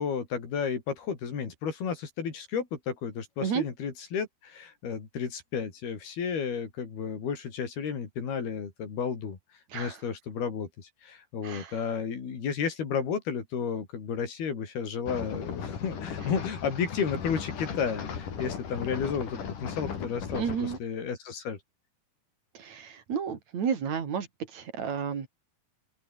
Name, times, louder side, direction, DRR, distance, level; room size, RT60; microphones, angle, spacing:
voice 1, 0.0-9.4 9.7-21.6, left 6 dB, 85° left, 6.2 m, -32 dB
sound 1, 15.1-20.8, left 7 dB, 60° left, 4.7 m, -37 dB
voice 2, 20.3-20.8 22.5-25.3, right 7 dB, 50° right, 4.0 m, -32 dB
open air
omnidirectional pair, 4.3 m